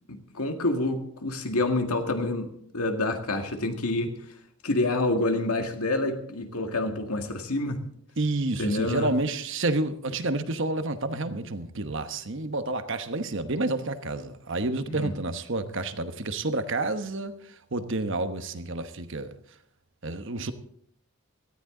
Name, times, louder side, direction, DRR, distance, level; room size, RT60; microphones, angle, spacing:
voice 1, 0.1-4.1 4.6-7.8 8.6-9.1 14.9-15.1, left 2 dB, 80° left, 2.0 m, -27 dB
voice 2, 8.2-19.3 20.0-20.5, right 2 dB, 55° right, 1.1 m, -29 dB
18.0 x 13.5 x 3.8 m
head